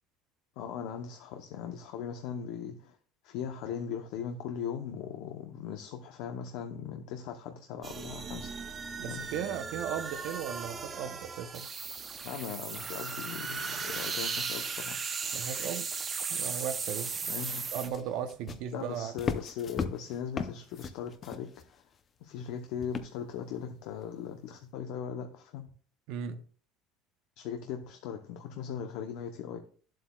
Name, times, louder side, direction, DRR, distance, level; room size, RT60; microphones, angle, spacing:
voice 1, 0.6-3.0 3.2-8.5 9.1-9.3 12.2-15.0 17.3-17.7 18.7-21.8 22.2-25.7 27.4-29.6, left 8 dB, 70° left, 0.8 m, -39 dB
sound 1, 7.8-17.9, right 5 dB, 25° right, 0.7 m, -36 dB
voice 2, 9.0-11.7 15.3-15.9 16.3-17.1 17.7-19.1 26.1-26.4, right 8 dB, 65° right, 0.8 m, -36 dB
Footsteps Cowboy Boots Ceramic Stone Tile, 17.3-22.0 22.8-23.4 24.0-24.1, left 5 dB, 25° left, 0.6 m, -38 dB
10.5 x 7.6 x 2.3 m
cardioid pair, 150°, 0 cm